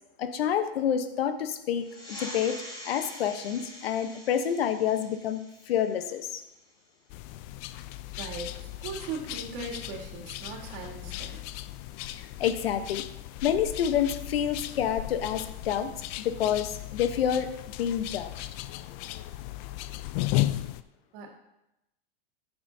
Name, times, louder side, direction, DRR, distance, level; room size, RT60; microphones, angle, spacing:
voice 1, 0.2-2.6 2.8-5.4 5.7-6.4 12.1-13.0 13.4-15.9 16.2-17.5 17.8-18.5, left 9 dB, 90° left, 9 dB, 1.1 m, -28 dB
sound 1, 1.8-6.9, left 1 dB, 15° left, 3.7 m, -45 dB
sound 2, 7.1-20.8, left 15 dB, 50° left, 0.5 m, -36 dB
voice 2, 8.2-11.4 21.1-21.4, right 4 dB, 55° right, -2 dB, 2.8 m, -39 dB
14.0 x 8.6 x 2.8 m, 0.90 s
supercardioid pair, 130°, 29 cm